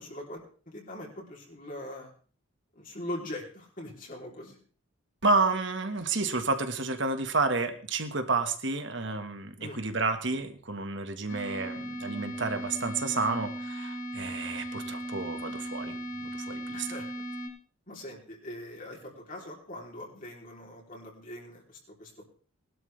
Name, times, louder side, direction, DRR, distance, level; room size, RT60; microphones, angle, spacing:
voice 1, 0.0-2.1 2.7-4.6 9.6-9.8 16.7-17.2 17.9-22.2, left 1 dB, 40° left, -2 dB, 3.3 m, -42 dB
voice 2, 5.2-17.0, right 3 dB, 55° right, 7 dB, 1.5 m, -30 dB
sound 1, 11.3-17.5, right 1 dB, 75° left, 4.8 m, -37 dB
20.0 x 12.0 x 3.3 m, 0.40 s
head